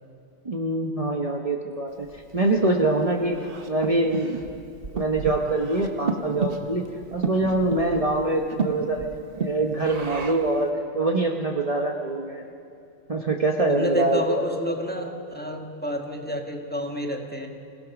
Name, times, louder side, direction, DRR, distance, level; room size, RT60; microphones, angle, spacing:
voice 1, 0.4-3.4 3.7-4.6 4.9-6.9 7.1-9.1 9.4-12.4 13.1-14.4, right 2 dB, 30° right, 1 dB, 1.1 m, -24 dB
Breathing, 2.1-10.6, right 4 dB, 50° right, 1.5 m, -33 dB
voice 2, 13.7-17.5, left 1 dB, 10° left, 2 dB, 1.5 m, -29 dB
26.0 x 17.0 x 6.0 m, 2.5 s
omnidirectional pair, 1.2 m